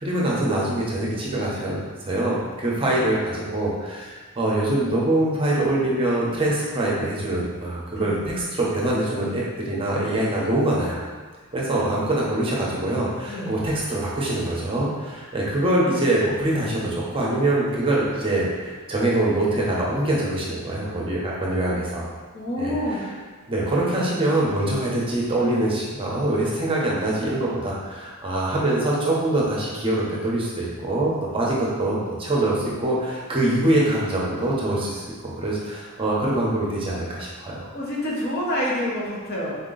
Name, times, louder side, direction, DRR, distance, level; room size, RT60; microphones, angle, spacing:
voice 1, 0.0-11.0 11.5-22.1 22.6-22.7 23.5-35.0 35.3-37.6, right 1 dB, 25° right, -5 dB, 0.8 m, -24 dB
voice 2, 22.3-23.0 37.7-39.6, left 1 dB, 50° left, -5 dB, 1.0 m, -27 dB
3.9 x 2.9 x 3.9 m, 1.4 s
head